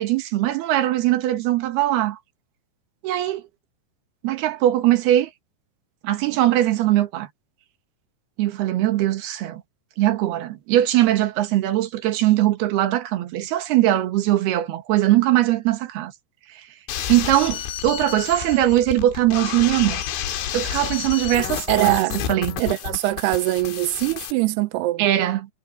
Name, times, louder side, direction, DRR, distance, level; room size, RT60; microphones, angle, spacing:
voice 1, 0.0-2.2 3.0-3.4 4.2-5.3 6.0-7.3 8.4-9.6 10.0-16.1 16.5-16.6 17.1-20.0 20.5-22.6 25.0-25.5, right 14 dB, 65° right, 3.2 m, -21 dB
sound 1, 16.9-24.3, left 10 dB, 70° left, 4.3 m, -30 dB
voice 2, 21.7-22.2 22.6-25.0, right 18 dB, 90° right, 2.4 m, -22 dB
omnidirectional pair, 5.8 m